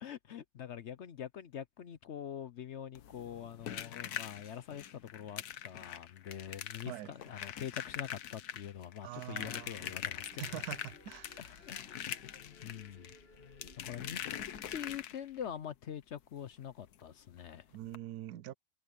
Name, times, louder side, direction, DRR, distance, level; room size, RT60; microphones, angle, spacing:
voice 1, 0.0-10.6 11.4-12.2 12.6-13.1 13.8-14.2 14.7-17.7, left 9 dB, 60° left, 0.9 m, -44 dB
sound 1, 2.9-15.5 16.9-17.0 17.3-17.4 17.9-18.0, left 10 dB, 85° left, 1.4 m, -43 dB
voice 2, 9.0-9.9 10.4-11.4 17.7-18.5, right 13 dB, 85° right, 1.1 m, -44 dB
sound 2, 9.4-15.0, left 3 dB, 40° left, 2.5 m, -58 dB
omnidirectional pair, 1.6 m